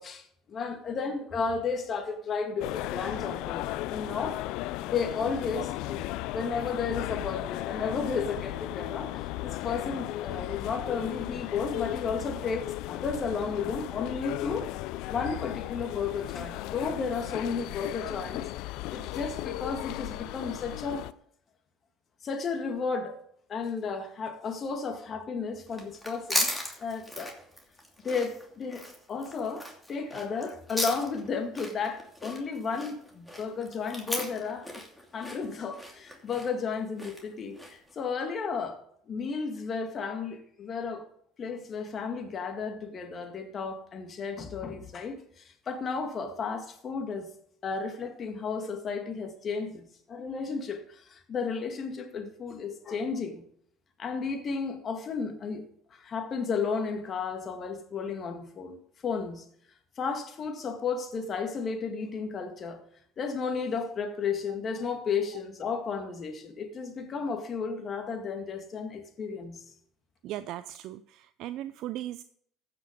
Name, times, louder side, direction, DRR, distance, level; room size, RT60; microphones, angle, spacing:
voice 1, 0.0-4.4 4.9-14.7 15.1-18.4 18.9-21.1 22.2-23.2 23.5-26.5 26.8-27.4 28.0-34.8 35.1-38.8 39.1-41.1 41.4-47.3 47.6-53.4 54.0-55.6 55.9-59.4 60.0-62.8 63.2-69.6, left 5 dB, 45° left, 1.9 m, -33 dB
sound 1, 2.6-21.1, left 16 dB, 70° left, 0.4 m, -36 dB
sound 2, 25.7-37.9, equal, 5° left, 2.7 m, -37 dB
voice 2, 70.2-72.2, right 13 dB, 65° right, 0.4 m, -37 dB
15.0 x 6.0 x 5.2 m
supercardioid pair, 80°, 0 cm